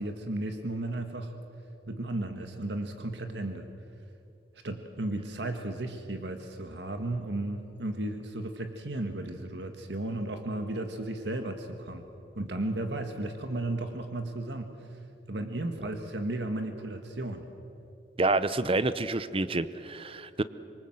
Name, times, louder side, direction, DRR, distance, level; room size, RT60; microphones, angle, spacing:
voice 1, 0.0-1.3 1.9-3.7 4.6-12.0 12.3-14.8 15.3-17.5, right 1 dB, 70° right, 6 dB, 1.7 m, -34 dB
voice 2, 18.2-20.4, right 2 dB, 30° right, 14 dB, 0.8 m, -28 dB
26.0 x 23.0 x 7.8 m, 2.7 s
head